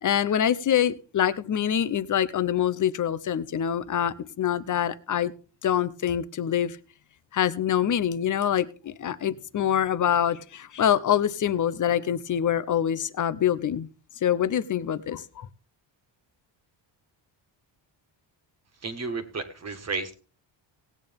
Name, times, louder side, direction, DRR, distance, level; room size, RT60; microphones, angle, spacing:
voice 1, 0.0-5.3 5.6-6.8 7.3-13.9 14.2-15.5, left 9 dB, 40° left, 0.7 m, -25 dB
voice 2, 18.8-20.2, right 4 dB, 35° right, 1.6 m, -32 dB
18.0 x 8.7 x 3.6 m
wide cardioid pair, 160°, 47 cm